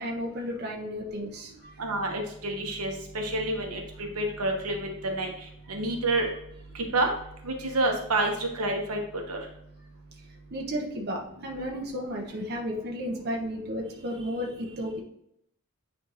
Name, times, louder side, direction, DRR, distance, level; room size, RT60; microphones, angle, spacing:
voice 1, 0.0-1.5 10.5-15.0, equal, 45° right, -1 dB, 1.0 m, -33 dB
voice 2, 1.8-3.8 4.2-4.8 5.0-5.3 5.7-6.3 6.9-7.1 7.7-9.0 9.3-9.4, right 2 dB, 80° right, 2 dB, 1.2 m, -28 dB
9.3 x 3.5 x 3.0 m, 0.74 s
head